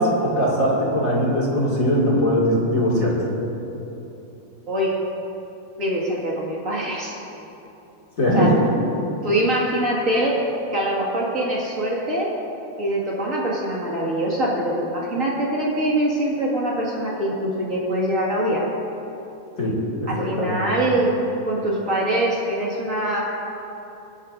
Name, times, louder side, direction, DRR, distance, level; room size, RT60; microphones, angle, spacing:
voice 1, 0.0-3.2 8.2-8.7 19.6-20.6, equal, 30° left, -6 dB, 1.8 m, -20 dB
voice 2, 5.8-7.1 8.3-8.5 9.2-10.4 10.7-12.3 12.8-18.6 20.1-21.2 21.5-23.2, right 1 dB, 45° right, -5 dB, 1.0 m, -23 dB
23.5 x 12.0 x 2.6 m, 2.9 s
omnidirectional pair, 4.4 m